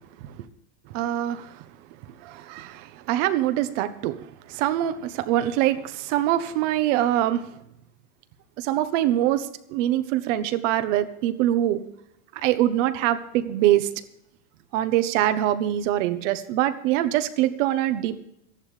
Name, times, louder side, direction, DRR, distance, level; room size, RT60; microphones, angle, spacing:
voice 1, 0.9-1.6 2.2-4.2 4.5-7.5 8.6-11.8 12.4-13.9 14.7-18.2, right 13 dB, 65° right, 11 dB, 1.5 m, -24 dB
14.0 x 11.5 x 5.2 m, 0.78 s
supercardioid pair, 125°, 40 cm